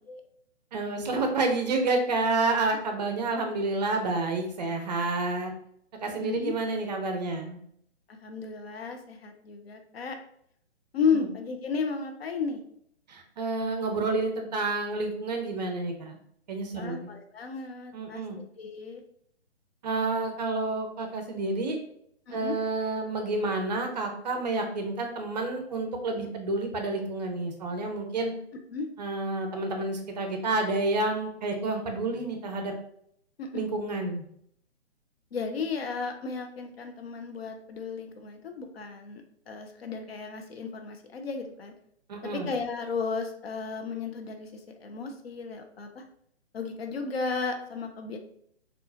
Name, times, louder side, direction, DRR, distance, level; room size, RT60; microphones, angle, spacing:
voice 1, 0.7-5.5 6.0-7.6 11.1-11.2 13.1-16.2 16.5-17.1 17.9-18.4 19.8-21.8 22.3-28.3 29.0-32.7 33.5-34.2 42.1-42.5, right 2 dB, 40° right, 4 dB, 0.6 m, -29 dB
voice 2, 6.2-6.5 8.1-10.2 10.9-12.6 16.7-18.2 18.6-19.0 22.3-22.6 28.7-28.9 33.4-33.6 35.3-41.7 42.3-46.0 46.5-48.2, left 5 dB, 60° left, 5 dB, 0.6 m, -33 dB
3.6 x 2.4 x 2.7 m, 0.68 s
figure-of-eight pair, 130°, 34 cm